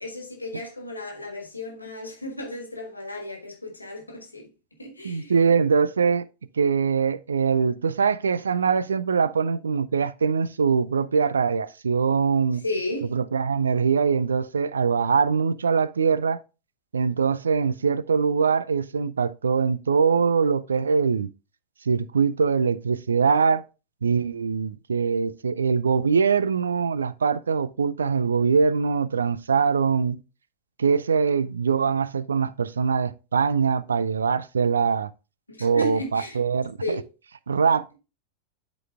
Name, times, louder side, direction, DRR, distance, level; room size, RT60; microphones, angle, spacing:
voice 1, 0.0-4.5 4.8-5.3 12.6-13.2 35.5-36.4 36.8-37.0, left 1 dB, 85° left, 1.7 m, -34 dB
voice 2, 5.0-6.3 6.6-12.6 13.1-16.4 16.9-21.3 21.9-23.6 24.0-30.2 30.8-35.1 35.6-36.8 37.5-38.0, right 5 dB, 70° right, 0.3 m, -23 dB
12.0 x 4.0 x 2.4 m
figure-of-eight pair, 90°, 0 cm